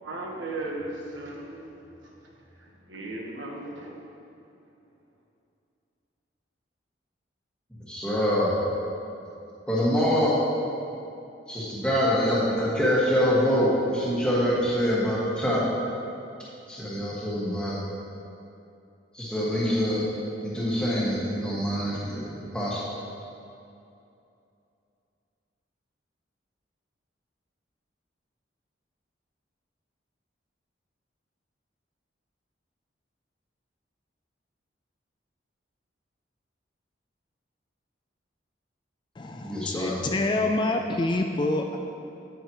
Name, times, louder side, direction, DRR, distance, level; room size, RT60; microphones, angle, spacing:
voice 1, 0.0-2.3 2.6-4.1, right 2 dB, 90° right, -1 dB, 1.4 m, -37 dB
voice 2, 7.9-8.6 9.7-10.3 11.5-15.7 16.7-17.8 19.1-20.1 20.4-22.8 39.4-40.1, equal, 5° left, -8 dB, 1.8 m, -25 dB
voice 3, 39.2-41.8, left 2 dB, 25° left, 4 dB, 0.3 m, -27 dB
9.6 x 8.8 x 3.1 m, 2.7 s
head